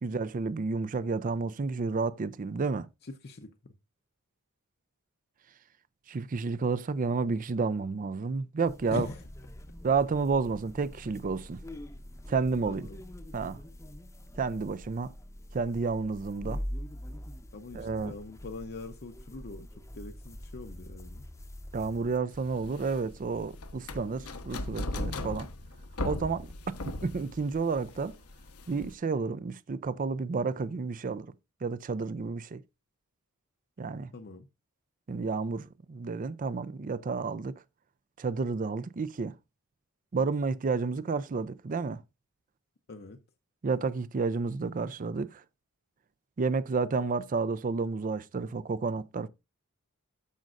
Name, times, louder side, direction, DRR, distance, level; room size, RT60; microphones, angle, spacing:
voice 1, 0.0-2.9 6.1-9.1 9.8-11.6 12.3-12.9 13.3-13.6 14.4-15.1 15.5-16.6 17.7-18.1 21.7-25.5 26.0-26.5 26.9-28.2 28.7-31.3 31.6-32.6 33.8-34.1 35.1-37.5 38.2-39.3 40.1-42.0 43.6-45.4 46.4-49.3, right 4 dB, 40° right, 0.4 m, -31 dB
voice 2, 3.0-3.7 8.9-9.3 12.6-13.0 17.5-21.3 34.1-34.5 42.9-43.2, left 3 dB, 50° left, 0.7 m, -42 dB
sound 1, 8.7-22.2, equal, 15° left, 0.8 m, -44 dB
sound 2, 22.3-28.9, left 2 dB, 85° left, 1.1 m, -38 dB
13.5 x 5.3 x 2.5 m
head